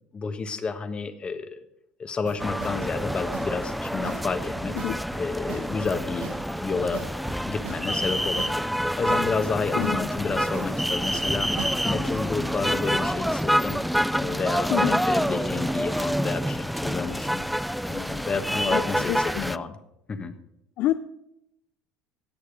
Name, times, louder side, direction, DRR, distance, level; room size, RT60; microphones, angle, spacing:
voice 1, 0.1-1.6 2.0-4.7 5.2-6.3 6.6-11.5 11.8-17.4 17.9-19.7 20.1-20.3, left 4 dB, 25° left, 9 dB, 1.3 m, -30 dB
sound 1, 2.2-11.8, right 7 dB, 80° right, 1.7 m, -41 dB
sound 2, 2.4-19.6, equal, ahead, 0.3 m, -27 dB
voice 2, 9.7-10.1 14.7-15.0 18.7-19.5 20.8-21.0, left 13 dB, 60° left, 11 dB, 0.5 m, -28 dB
18.0 x 6.6 x 5.1 m, 0.82 s
supercardioid pair, 110°, 4 cm